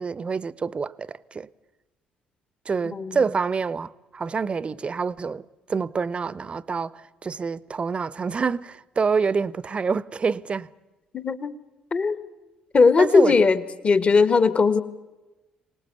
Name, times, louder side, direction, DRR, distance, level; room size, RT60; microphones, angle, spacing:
voice 1, 0.0-1.5 2.7-5.4 5.7-10.7 13.0-13.3, right 5 dB, 35° right, 0.8 m, -27 dB
voice 2, 11.1-11.5 11.9-12.2 12.7-14.8, left 4 dB, 35° left, 1.5 m, -19 dB
25.5 x 19.5 x 8.3 m
figure-of-eight pair, 45°, 3 cm